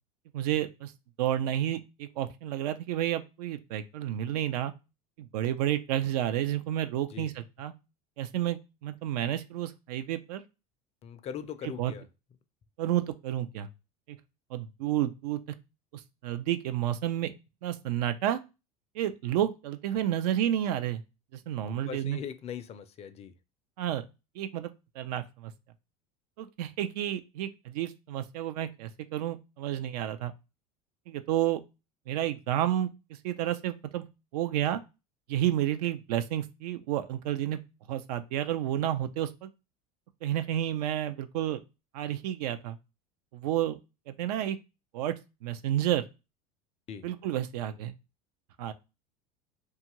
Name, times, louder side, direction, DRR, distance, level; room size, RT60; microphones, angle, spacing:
voice 1, 0.3-0.9 1.2-4.7 5.2-7.7 8.2-10.4 11.8-11.9 12.8-13.7 14.1-14.2 14.5-15.4 15.9-17.3 17.6-18.4 18.9-21.0 21.3-22.2 23.8-24.0 24.4-25.5 26.4-30.3 31.1-31.6 32.1-32.9 33.2-34.1 34.3-34.8 35.3-37.6 37.9-39.5 40.2-41.6 41.9-42.8 43.3-43.8 44.1-44.6 44.9-46.0 47.0-47.9 48.6-48.7, right 12 dB, 80° right, 0.4 m, -30 dB
voice 2, 11.0-12.1 21.7-23.3 46.9-47.1, left 8 dB, 35° left, 0.4 m, -40 dB
2.6 x 2.3 x 2.9 m
supercardioid pair, 100°, 20 cm